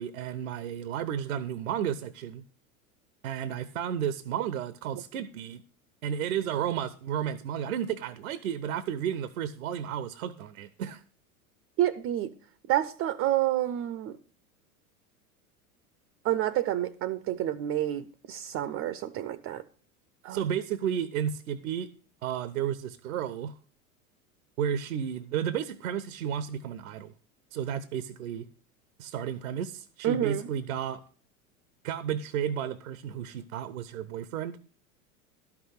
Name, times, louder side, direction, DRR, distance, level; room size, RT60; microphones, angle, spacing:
voice 1, 0.0-2.4 3.2-5.6 6.0-11.0 20.3-21.9 22.2-23.5 24.6-27.1 27.5-28.4 29.0-31.0 31.8-34.6, right 9 dB, 70° right, 0.8 m, -32 dB
voice 2, 11.8-12.3 12.7-14.2 16.2-19.6 20.2-20.4 30.0-30.5, right 12 dB, 30° right, 0.6 m, -29 dB
12.5 x 6.0 x 6.4 m
figure-of-eight pair, 80°, 44 cm